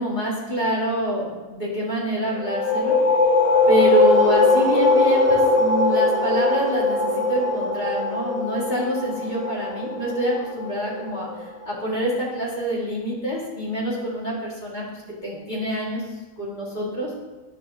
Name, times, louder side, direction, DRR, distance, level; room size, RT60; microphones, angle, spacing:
voice 1, 0.0-3.0 3.7-16.0 16.4-17.1, equal, 35° left, -5 dB, 2.0 m, -26 dB
sound 1, 2.4-11.8, left 3 dB, 70° left, 1.6 m, -21 dB
10.5 x 6.2 x 2.7 m, 1.2 s
omnidirectional pair, 1.5 m